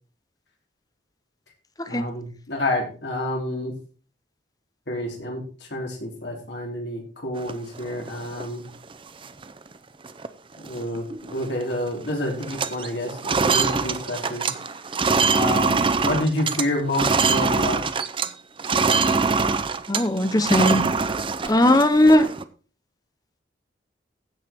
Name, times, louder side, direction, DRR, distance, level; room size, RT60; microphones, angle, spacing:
voice 1, 1.9-3.7 4.9-5.4 5.7-8.6 10.6-14.5 15.3-17.8, left 1 dB, 70° left, 1 dB, 3.6 m, -28 dB
sound 1, 7.4-8.5 8.9-9.0 9.2-9.6 10.0-10.3 10.5-11.6 11.9-12.1 12.4-18.3 18.6-22.4, right 4 dB, 30° right, 0.6 m, -24 dB
voice 2, 19.9-20.8 21.4-22.3, left 1 dB, 20° left, 10 dB, 0.9 m, -18 dB
15.5 x 5.8 x 4.5 m, 0.38 s
head